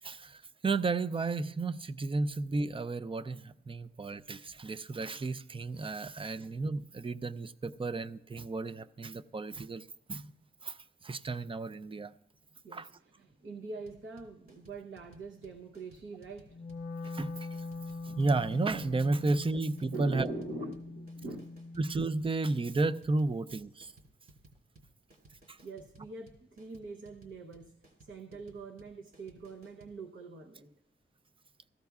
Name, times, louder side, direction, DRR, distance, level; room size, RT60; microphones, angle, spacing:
voice 1, 0.0-10.3 10.6-10.8 11.0-12.1 12.7-12.9 17.0-17.5 18.0-20.3 21.8-23.9 25.5-25.6, right 3 dB, 25° right, 0.4 m, -33 dB
voice 2, 12.6-16.7 19.2-19.3 19.9-21.6 25.6-30.7, right 3 dB, 70° right, 0.9 m, -44 dB
sound 1, 13.9-29.9, right 2 dB, 50° right, 3.2 m, -59 dB
Wind instrument woodwind instrument, 16.5-22.7, left 2 dB, 50° left, 0.5 m, -43 dB
16.5 x 14.5 x 2.4 m
wide cardioid pair, 110°, 21 cm